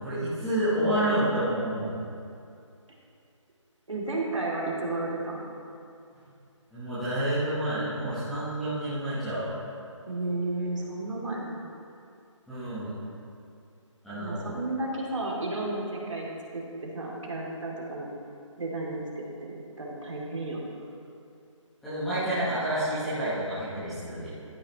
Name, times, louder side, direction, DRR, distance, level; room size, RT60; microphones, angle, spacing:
voice 1, 0.0-1.9 6.7-9.5 12.5-12.9 14.0-14.5 21.8-24.3, right 1 dB, ahead, -16 dB, 0.9 m, -29 dB
voice 2, 3.9-5.5 10.1-11.7 14.1-16.3 16.5-18.1 18.6-20.7, right 2 dB, 70° right, -3 dB, 2.5 m, -33 dB
13.5 x 8.7 x 3.0 m, 2.6 s
hypercardioid pair, 175°, 17 cm